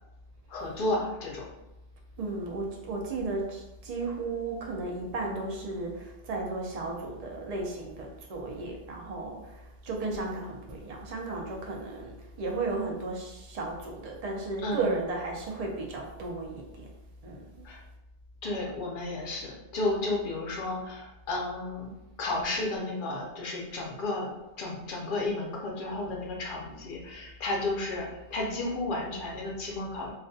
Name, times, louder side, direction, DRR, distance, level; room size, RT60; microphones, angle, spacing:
voice 1, 0.5-1.5 14.6-14.9 17.6-17.8 18.4-21.9 22.2-24.3 24.6-30.1, left 2 dB, 60° left, -1 dB, 0.7 m, -32 dB
voice 2, 2.2-16.9 17.2-17.7, right 3 dB, 50° right, 0 dB, 0.5 m, -34 dB
2.3 x 2.2 x 2.6 m, 0.96 s
omnidirectional pair, 1.0 m